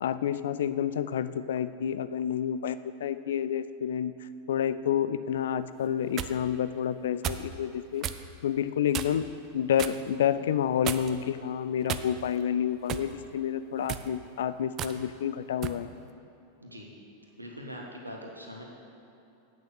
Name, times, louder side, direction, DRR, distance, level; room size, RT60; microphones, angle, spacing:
voice 1, 0.0-4.1 4.5-8.1 8.4-15.9, left 9 dB, 60° left, 14 dB, 0.3 m, -29 dB
sound 1, 5.8-6.3 7.2-7.5 8.0-8.2 8.9-9.3 9.8-10.0 10.8-11.3 11.9-12.4 12.9-13.1 13.8-14.1 14.8-15.0 15.6-15.8, right 10 dB, 35° right, 0.4 m, -34 dB
voice 2, 17.4-18.7, equal, 85° right, -1 dB, 1.4 m, -42 dB
8.6 x 6.4 x 6.4 m, 2.9 s
figure-of-eight pair, 90°, 0 cm